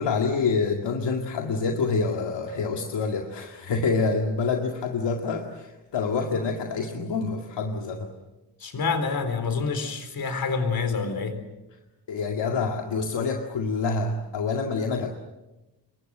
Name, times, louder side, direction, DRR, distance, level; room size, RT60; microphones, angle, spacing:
voice 1, 0.0-8.1 12.1-15.1, left 4 dB, 75° left, 2 dB, 2.2 m, -27 dB
voice 2, 8.6-11.4, left 4 dB, 55° left, 9 dB, 4.0 m, -27 dB
27.5 x 23.0 x 7.8 m, 1.0 s
wide cardioid pair, 180°, 43 cm